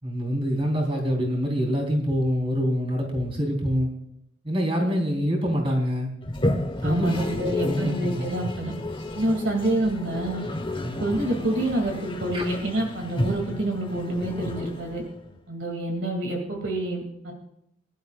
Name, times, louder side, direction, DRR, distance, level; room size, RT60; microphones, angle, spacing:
voice 1, 0.0-3.9 4.4-6.1 6.8-7.2 7.6-8.2 10.8-10.9 12.3-12.4, equal, 30° right, 1 dB, 4.1 m, -25 dB
Toilet flush, 6.2-15.3, left 1 dB, 25° left, 1.3 m, -32 dB
voice 2, 6.8-8.7 9.2-10.4 11.0-15.0 15.5-17.3, right 1 dB, 65° right, 1 dB, 2.7 m, -27 dB
22.0 x 12.0 x 2.5 m, 0.76 s
head